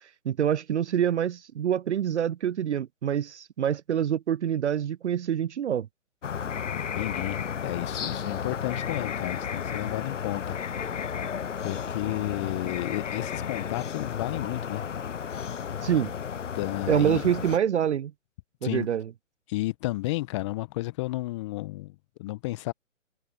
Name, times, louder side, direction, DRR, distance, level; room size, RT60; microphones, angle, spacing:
voice 1, 0.3-5.9 15.8-16.1 16.9-18.1 18.6-19.1, right 9 dB, 60° right, 0.5 m, -26 dB
sound 1, 6.2-17.6, left 7 dB, 70° left, 0.9 m, -33 dB
voice 2, 6.9-11.1 11.6-14.8 15.3-15.5 16.5-17.2 18.6-18.9 19.5-22.7, left 19 dB, 25° left, 1.1 m, -32 dB
figure-of-eight pair, 135°, 39 cm